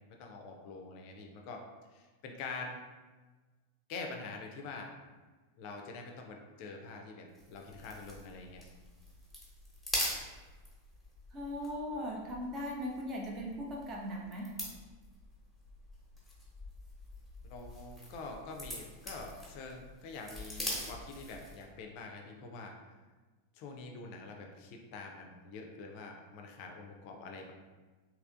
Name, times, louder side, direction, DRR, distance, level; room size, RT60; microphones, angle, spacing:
voice 1, 0.2-1.6 1.9-2.8 3.9-4.9 5.6-8.6 17.5-22.7 23.5-27.5, left 3 dB, 45° left, 2 dB, 0.4 m, -45 dB
sound 1, 7.3-21.7, left 1 dB, ahead, 1.0 m, -44 dB
voice 2, 11.3-14.5, equal, 30° right, -1 dB, 0.6 m, -39 dB
3.2 x 2.8 x 2.5 m, 1.3 s
figure-of-eight pair, 90°, 0 cm